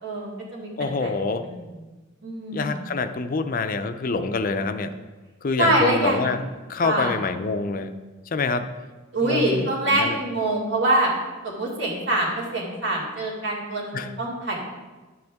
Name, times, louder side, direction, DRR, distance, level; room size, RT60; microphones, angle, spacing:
voice 1, 0.0-1.1 1.4-1.6 2.2-2.9 5.6-6.2 6.8-7.2 9.1-11.1 11.4-14.6, right 1 dB, 60° right, -3 dB, 2.4 m, -24 dB
voice 2, 0.8-1.4 2.5-4.9 5.4-6.4 6.7-7.9 8.3-8.7 9.2-10.2 13.9-14.1, left 4 dB, 45° left, 9 dB, 0.5 m, -26 dB
11.0 x 7.9 x 3.5 m, 1.2 s
head